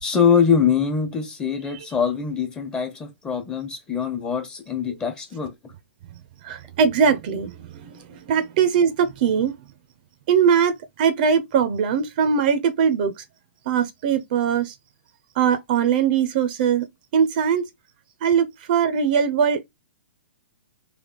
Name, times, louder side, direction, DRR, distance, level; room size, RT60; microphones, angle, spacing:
voice 1, 0.0-5.5, left 6 dB, 15° left, 1.2 m, -23 dB
voice 2, 6.4-9.5 10.3-13.1 13.7-14.7 15.4-16.9 17.1-17.7 18.2-19.6, right 7 dB, 50° right, 0.7 m, -21 dB
3.4 x 2.8 x 3.9 m
hypercardioid pair, 120°, 6 cm